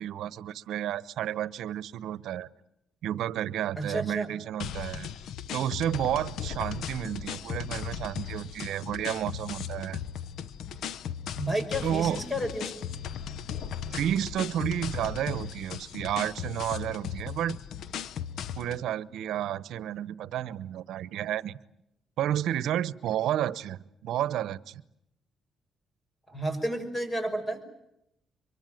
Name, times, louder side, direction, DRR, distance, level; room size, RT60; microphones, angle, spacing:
voice 1, 0.0-2.5 3.0-5.1 5.5-10.0 11.8-12.2 13.9-17.6 18.6-21.6 22.2-24.8, right 11 dB, 80° right, 18 dB, 0.9 m, -31 dB
voice 2, 3.8-4.3 11.3-12.9 26.3-27.6, right 1 dB, 15° left, 9 dB, 6.0 m, -31 dB
sound 1, 4.6-18.8, left 8 dB, 75° left, 1.0 m, -37 dB
24.5 x 23.5 x 9.2 m, 0.81 s
cardioid pair, 90°, 0 cm